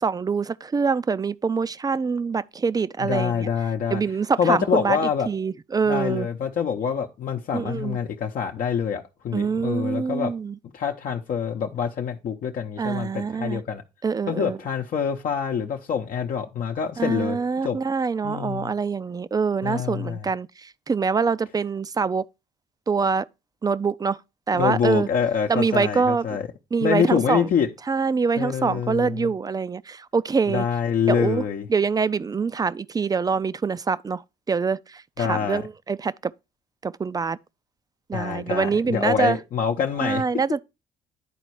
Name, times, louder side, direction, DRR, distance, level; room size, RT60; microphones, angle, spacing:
voice 1, 0.0-3.5 3.9-5.0 5.3-6.3 7.5-8.0 9.3-10.6 12.8-13.6 14.0-14.6 17.0-22.2 22.9-23.3 23.6-24.2 24.5-25.1 25.5-26.3 26.7-27.5 27.9-30.7 31.1-31.4 31.7-34.2 34.5-36.3 36.8-37.4 38.1-39.4 40.0-40.6, right 5 dB, 25° right, 0.4 m, -25 dB
voice 2, 3.0-4.0 4.4-5.3 5.9-10.3 10.7-13.8 14.3-17.8 18.2-18.7 19.6-20.3 24.5-26.5 26.8-27.7 28.4-29.3 30.5-31.7 35.2-35.6 38.1-40.2, left 7 dB, 60° left, 0.8 m, -26 dB
10.0 x 4.1 x 4.7 m
supercardioid pair, 75°, 16 cm